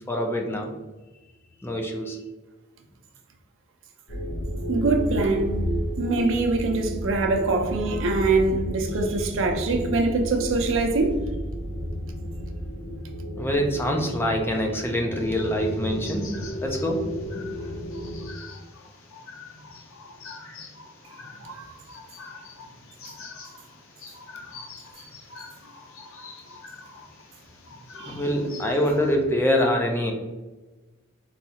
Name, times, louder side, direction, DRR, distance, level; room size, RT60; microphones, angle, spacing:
voice 1, 0.1-0.7 1.6-2.2 13.3-16.3 16.6-17.0 28.1-30.1, equal, 10° left, 0.4 m, -25 dB
sound 1, 4.1-18.3, equal, 45° left, 0.7 m, -32 dB
voice 2, 4.7-5.6 6.0-11.2 21.4-21.7 27.9-28.2, right 3 dB, 70° right, 0.6 m, -24 dB
sound 2, 15.1-29.1, left 4 dB, 85° left, 0.6 m, -45 dB
4.1 x 2.3 x 2.8 m
head